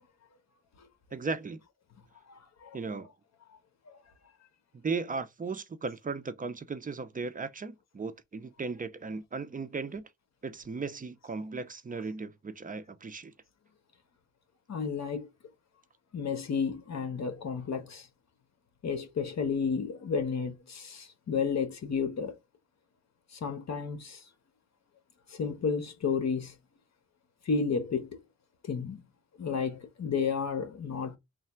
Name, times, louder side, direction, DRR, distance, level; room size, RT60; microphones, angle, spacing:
voice 1, 1.1-1.6 2.7-3.1 4.8-10.1 10.4-13.3, right 4 dB, 25° right, 0.5 m, -36 dB
voice 2, 2.3-2.7 14.7-15.3 16.1-18.1 18.8-22.4 23.4-24.2 25.3-26.5 27.5-28.2 28.6-29.0 29.4-31.2, left 5 dB, 60° left, 1.1 m, -32 dB
3.3 x 2.3 x 4.3 m
wide cardioid pair, 115°, 31 cm